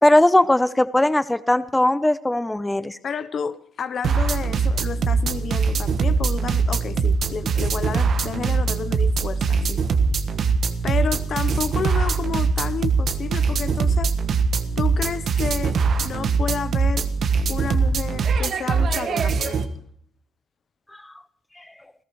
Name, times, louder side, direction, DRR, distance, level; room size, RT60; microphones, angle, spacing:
voice 1, 0.0-3.0, left 1 dB, 10° left, 0.7 m, -19 dB
voice 2, 3.0-9.8 10.8-14.1 14.8-17.1 17.5-19.7, left 6 dB, 50° left, 0.8 m, -30 dB
sound 1, 4.0-19.7, right 5 dB, 60° right, 1.3 m, -22 dB
27.5 x 14.5 x 3.1 m
supercardioid pair, 75°, 0 cm